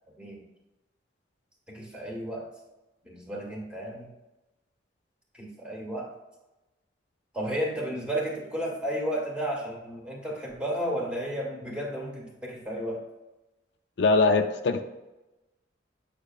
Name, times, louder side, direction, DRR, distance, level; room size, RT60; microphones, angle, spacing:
voice 1, 1.7-2.5 3.0-4.1 5.3-6.1 7.3-13.0, equal, 5° right, -2 dB, 1.4 m, -33 dB
voice 2, 14.0-14.8, left 3 dB, 65° left, 7 dB, 0.4 m, -22 dB
8.3 x 6.1 x 2.4 m, 1.1 s
head